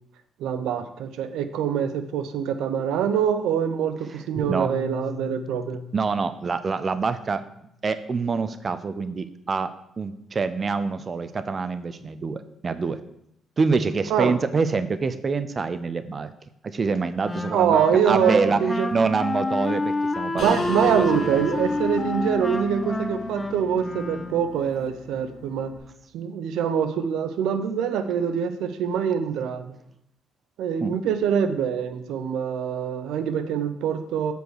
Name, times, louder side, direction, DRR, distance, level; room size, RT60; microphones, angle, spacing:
voice 1, 0.4-5.8 14.1-14.3 17.5-18.9 20.3-25.7 26.1-29.7 30.6-34.3, right 8 dB, 85° right, 10 dB, 0.7 m, -24 dB
Piano, 4.4-8.8, left 3 dB, 20° right, 2.3 m, -40 dB
voice 2, 5.9-7.4 7.8-9.7 10.0-13.0 13.6-16.3 16.6-18.6 18.9-21.4 30.8-30.9, right 4 dB, 40° right, 11 dB, 0.5 m, -26 dB
Wind instrument woodwind instrument, 17.2-24.6, left 2 dB, 15° left, 0.8 m, -29 dB
sound 1, 20.4-25.8, left 3 dB, 50° left, 1.8 m, -39 dB
8.0 x 4.7 x 6.4 m, 0.78 s
cardioid pair, 90°, 0 cm